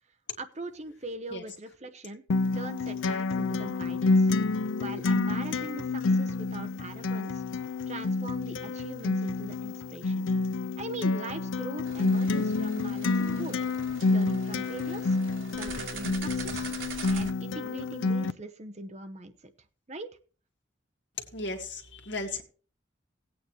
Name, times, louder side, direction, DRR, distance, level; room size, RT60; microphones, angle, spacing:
voice 1, 0.4-2.2 2.6-4.3 4.8-7.4 7.9-10.3 10.8-13.6 14.1-15.2 15.5-16.7 17.0-19.5 19.9-20.1, right 2 dB, 35° right, 7 dB, 0.9 m, -41 dB
Acoustic guitar, 2.3-18.3, left 3 dB, 80° left, 0.5 m, -28 dB
sound 1, 11.8-17.3, right 5 dB, 80° right, 2.4 m, -43 dB
voice 2, 21.2-22.4, left 3 dB, 65° left, 3 dB, 1.9 m, -35 dB
17.5 x 8.7 x 3.1 m, 0.40 s
head